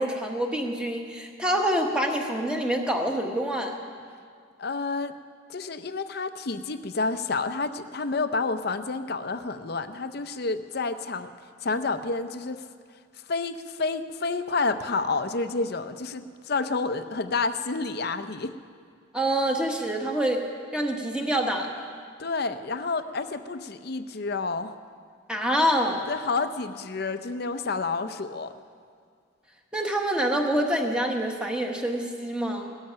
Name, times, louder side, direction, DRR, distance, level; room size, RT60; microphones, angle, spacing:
voice 1, 0.0-3.8 19.1-20.4 20.7-21.7 25.3-26.0 29.7-32.8, right 1 dB, 5° right, 2 dB, 1.2 m, -26 dB
voice 2, 4.6-5.1 5.5-11.3 11.6-12.7 13.3-18.5 22.2-24.7 26.1-28.5, left 3 dB, 50° left, 10 dB, 0.6 m, -29 dB
17.5 x 13.0 x 5.8 m, 2.1 s
head